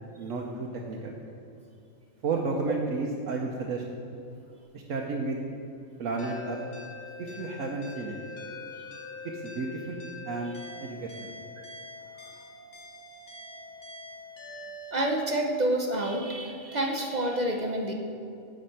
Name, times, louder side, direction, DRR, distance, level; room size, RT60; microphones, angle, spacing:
voice 1, 0.2-1.1 2.2-3.8 4.7-5.4 6.0-6.6 7.2-8.2 9.4-10.0 10.2-10.5 10.8-11.3, right 3 dB, 70° right, -1 dB, 1.2 m, -32 dB
sound 1, 6.2-14.9, left 2 dB, 60° left, 1.5 m, -44 dB
voice 2, 14.9-17.9, right 1 dB, 40° right, 2 dB, 0.8 m, -28 dB
9.8 x 5.1 x 7.7 m, 2.7 s
omnidirectional pair, 1.4 m